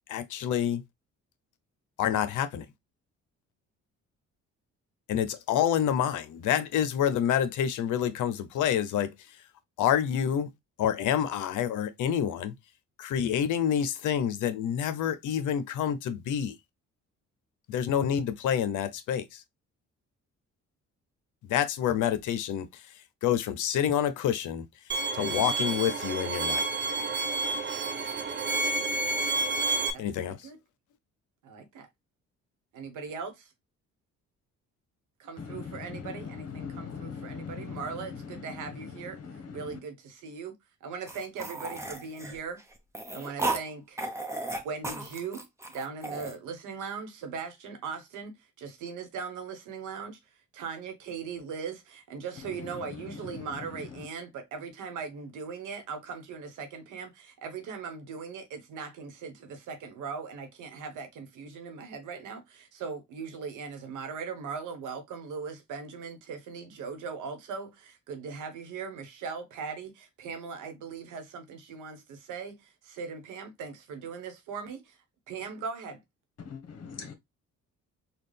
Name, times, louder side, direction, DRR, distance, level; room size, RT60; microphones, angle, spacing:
voice 1, 0.1-0.8 2.0-2.7 5.1-9.1 9.8-10.5 10.8-12.5 13.0-16.6 17.7-19.4 21.4-22.7 23.2-24.7 25.1-26.6 30.0-30.4, left 9 dB, 80° left, 0.7 m, -27 dB
Bowed string instrument, 24.9-29.9, right 3 dB, 40° right, 0.7 m, -29 dB
voice 2, 29.9-30.6 31.4-31.9 32.7-33.5 35.2-40.5 40.8-42.6 43.1-44.0 44.5-45.4 45.7-50.2 50.5-75.0 75.3-76.0, right 5 dB, 90° right, 1.2 m, -39 dB
voice 3, 35.4-39.8 52.4-54.1 76.4-77.1, left 6 dB, 55° left, 1.1 m, -41 dB
sound 1, 41.1-43.6 44.0-46.4, right 2 dB, 10° right, 0.9 m, -34 dB
4.0 x 2.3 x 3.3 m
cardioid pair, 90°, 30 cm